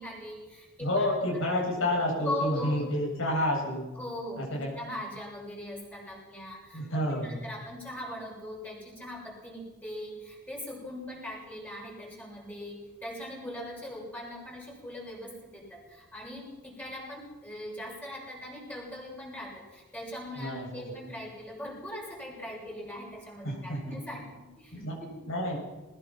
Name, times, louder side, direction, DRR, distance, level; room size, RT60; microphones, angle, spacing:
voice 1, 0.0-1.1 2.2-2.9 4.0-25.1, left 1 dB, 5° left, -3 dB, 7.5 m, -40 dB
voice 2, 0.8-3.8 4.4-4.7 6.7-7.4 20.4-20.9 23.4-23.9 24.7-24.9 25.2-25.6, left 1 dB, 65° left, -2 dB, 7.7 m, -29 dB
21.0 x 21.0 x 6.1 m, 1.2 s
head